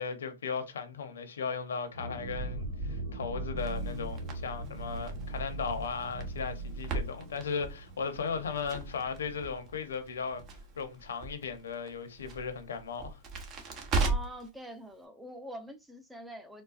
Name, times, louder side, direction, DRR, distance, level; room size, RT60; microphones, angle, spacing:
voice 1, 0.0-10.4 10.8-13.2, left 5 dB, 90° left, 0.7 m, -36 dB
sound 1, 1.9-11.4 11.6-11.7 12.1-12.3, right 2 dB, 70° right, 1.3 m, -40 dB
Crackle, 3.6-14.5, right 3 dB, 35° right, 0.9 m, -38 dB
voice 2, 14.0-16.6, right 1 dB, 5° right, 0.6 m, -45 dB
3.8 x 2.2 x 2.4 m
hypercardioid pair, 125°, 0 cm